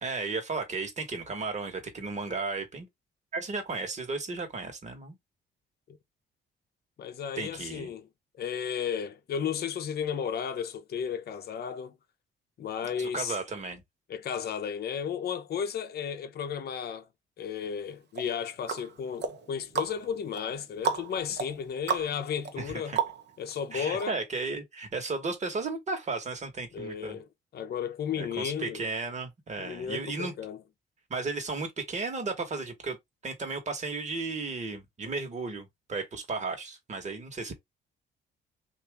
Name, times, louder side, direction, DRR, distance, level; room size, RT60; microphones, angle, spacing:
voice 1, 0.0-2.9 3.3-5.2 7.4-7.9 13.0-13.8 22.6-23.0 23.7-27.2 28.2-30.3 31.1-33.0 33.2-37.5, right 3 dB, 35° right, 1.3 m, -34 dB
voice 2, 7.0-8.1 8.4-11.9 12.6-13.4 14.1-17.1 17.4-23.0 23.4-24.2 26.7-27.3 27.5-28.8 29.6-30.6, left 7 dB, 55° left, 0.7 m, -34 dB
sound 1, 18.1-23.5 24.0-24.1, right 7 dB, 60° right, 0.8 m, -34 dB
2.8 x 2.6 x 3.4 m
cardioid pair, 90°, 20 cm